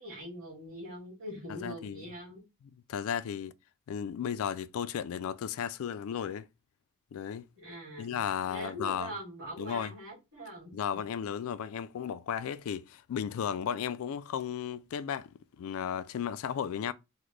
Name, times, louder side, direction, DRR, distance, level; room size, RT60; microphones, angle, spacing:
voice 1, 0.0-2.4 7.6-8.2 8.5-11.0, equal, 60° right, 2.0 m, -42 dB
voice 2, 1.6-2.0 2.9-3.5 3.9-6.5 7.1-7.5 8.0-9.1 9.6-9.9 10.7-16.9, left 8 dB, 70° left, 0.3 m, -34 dB
3.7 x 2.1 x 3.1 m
head